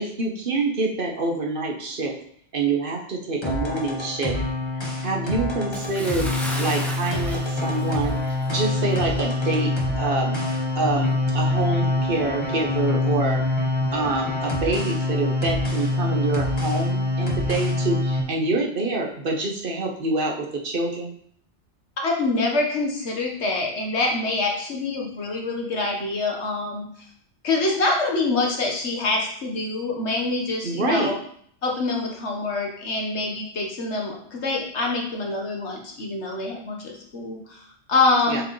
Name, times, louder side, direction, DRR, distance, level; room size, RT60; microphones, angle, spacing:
voice 1, 0.0-2.1 2.5-4.4 5.0-6.3 6.6-9.7 10.0-10.3 10.7-13.4 13.9-21.1 30.6-31.1 38.3-38.4, right 3 dB, 50° right, 0 dB, 1.1 m, -26 dB
sound 1, 3.4-18.2, left 2 dB, 25° left, 1.1 m, -25 dB
Bathtub (filling or washing) / Splash splatter, 5.7-8.6 8.9-9.1 9.7-9.8, equal, ahead, 0.8 m, -35 dB
voice 2, 22.0-26.9 27.4-31.2 31.6-38.4, left 3 dB, 70° left, 0 dB, 1.5 m, -25 dB
7.6 x 4.6 x 3.2 m, 0.63 s
omnidirectional pair, 1.2 m